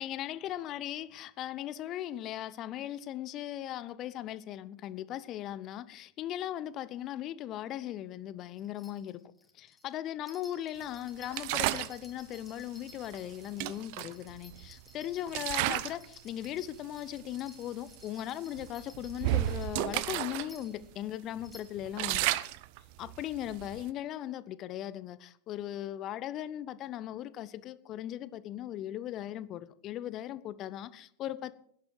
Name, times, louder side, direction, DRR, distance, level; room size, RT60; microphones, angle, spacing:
voice 1, 0.0-9.2 9.5-22.3 23.0-31.6, left 12 dB, 35° left, 0.8 m, -38 dB
sound 1, 8.6-20.9 21.4-21.6, left 2 dB, 10° left, 2.6 m, -57 dB
sound 2, 11.3-12.0 13.1-13.2 13.6-14.8 15.3-16.0 16.4-16.7 17.3-17.4 17.8-18.0 18.6-20.5 20.8-20.9 21.4-23.9, right 16 dB, 45° right, 0.6 m, -32 dB
17.0 x 10.5 x 4.7 m
figure-of-eight pair, 90°, 0 cm